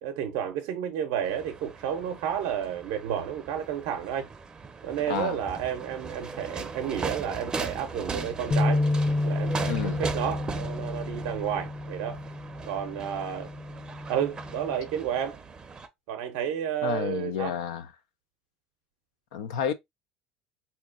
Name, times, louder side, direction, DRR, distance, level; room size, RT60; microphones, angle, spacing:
voice 1, 0.0-4.3 4.8-8.8 9.2-12.2 12.7-13.5 14.1-15.4 16.1-17.5, right 9 dB, 75° right, 0.5 m, -31 dB
sound 1, 1.2-15.9, right 4 dB, 25° right, 0.5 m, -38 dB
sound 2, 8.5-14.8, left 2 dB, 25° left, 0.5 m, -30 dB
voice 2, 9.6-10.0 16.8-17.9 19.3-19.7, left 8 dB, 90° left, 0.5 m, -30 dB
4.2 x 2.7 x 2.4 m
supercardioid pair, 100°, 3 cm